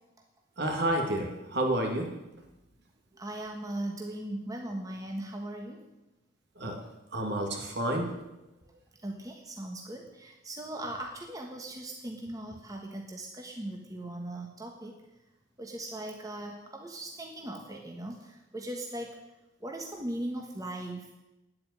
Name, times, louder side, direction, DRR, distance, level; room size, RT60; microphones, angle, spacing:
voice 1, 0.6-2.1 6.6-6.8 7.1-8.1, right 1 dB, 60° right, 3 dB, 2.5 m, -30 dB
voice 2, 3.2-5.8 9.0-15.0 15.6-19.2 19.6-21.1, right 1 dB, 20° right, 1 dB, 1.3 m, -39 dB
9.7 x 8.6 x 9.6 m, 0.99 s
head